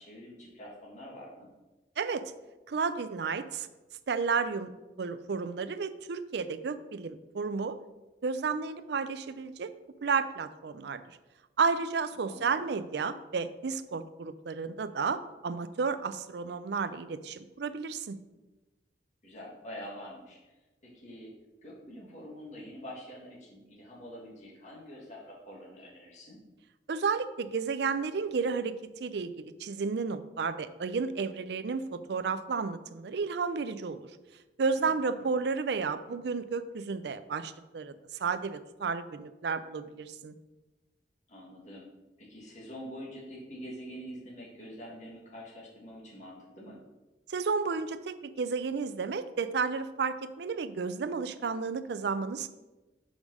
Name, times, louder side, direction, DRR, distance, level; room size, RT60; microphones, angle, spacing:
voice 1, 0.0-1.5 12.1-12.4 19.2-20.6 20.8-21.3 21.6-26.4 34.8-35.3 41.3-41.9 42.2-46.8, equal, 45° left, -5 dB, 1.8 m, -46 dB
voice 2, 2.7-3.7 4.1-4.7 5.0-7.8 8.2-9.7 10.0-11.2 11.6-18.2 26.9-34.0 34.6-37.9 38.2-40.3 47.3-52.5, right 5 dB, 65° right, 12 dB, 0.4 m, -32 dB
5.2 x 5.0 x 6.3 m, 1.1 s
head